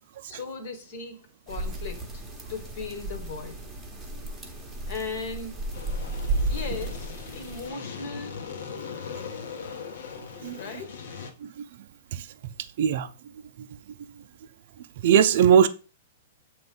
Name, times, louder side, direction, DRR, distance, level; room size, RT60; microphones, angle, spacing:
voice 1, 0.3-2.2 2.5-3.7 4.9-5.6 6.5-8.4 10.5-11.1, left 4 dB, 45° left, 1.5 m, -37 dB
sound 1, 1.5-7.7, right 2 dB, 5° right, 1.2 m, -33 dB
sound 2, 5.7-11.3, left 6 dB, 65° left, 1.3 m, -39 dB
voice 2, 15.0-15.7, right 8 dB, 50° right, 0.5 m, -19 dB
7.7 x 3.1 x 5.3 m
hypercardioid pair, 170°, 0 cm